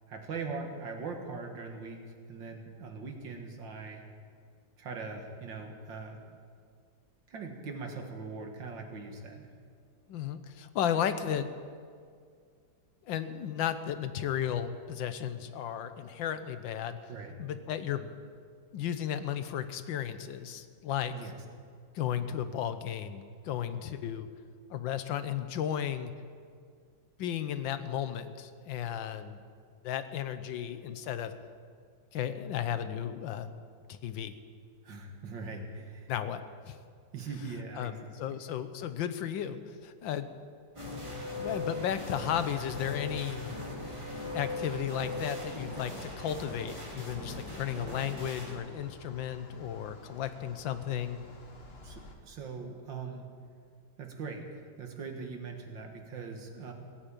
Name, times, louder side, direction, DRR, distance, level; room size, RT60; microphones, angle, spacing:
voice 1, 0.1-2.0 2.3-4.0 4.8-6.2 7.3-9.5 17.1-17.3 21.1-21.4 34.8-36.1 37.1-38.4 51.8-53.3 54.0-56.7, right 4 dB, 75° right, 3 dB, 2.4 m, -41 dB
voice 2, 10.1-11.5 13.0-17.0 17.4-18.1 18.7-21.1 21.9-24.3 24.7-26.1 27.2-29.4 29.8-31.3 32.1-33.5 33.9-34.3 36.1-36.8 37.8-40.3 41.4-43.6 44.3-51.2, left 9 dB, 80° left, 11 dB, 1.5 m, -34 dB
sound 1, 40.8-48.5, left 1 dB, 15° right, 3.5 m, -39 dB
sound 2, 42.0-52.2, left 2 dB, 35° left, 1.5 m, -52 dB
17.5 x 9.0 x 8.7 m, 2.1 s
omnidirectional pair, 2.1 m